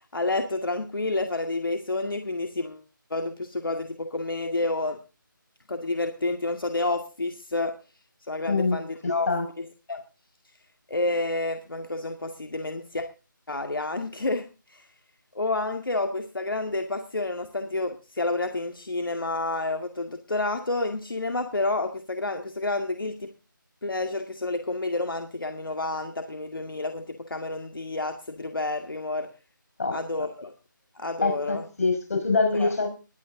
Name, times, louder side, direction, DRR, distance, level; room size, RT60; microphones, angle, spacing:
voice 1, 0.1-2.8 3.1-5.0 5.7-7.7 8.3-9.3 9.6-10.0 10.9-13.1 13.5-14.4 14.7-14.8 15.3-23.3 23.8-29.3 29.9-30.5 31.0-31.7 32.5-32.7, left 2 dB, 80° left, 2.1 m, -29 dB
voice 2, 8.5-9.5 29.8-30.0 31.2-32.9, left 3 dB, 45° left, 5.8 m, -25 dB
20.5 x 9.0 x 3.9 m
figure-of-eight pair, 175°, 11 cm